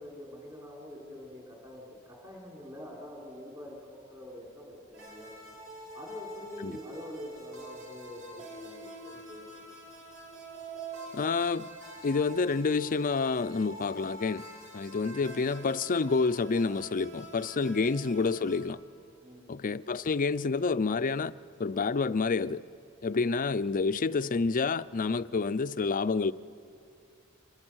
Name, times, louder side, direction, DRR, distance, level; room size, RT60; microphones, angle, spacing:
voice 1, 0.0-5.6 5.9-9.7 19.2-19.6, left 1 dB, 20° right, 4.1 m, -46 dB
sound 1, 4.9-18.6, right 2 dB, 75° right, 5.6 m, -46 dB
voice 2, 11.1-11.7 12.0-14.4 14.7-18.8 19.5-21.3 21.6-22.6 23.0-26.3, left 4 dB, 40° left, 0.5 m, -28 dB
28.0 x 25.5 x 6.3 m
head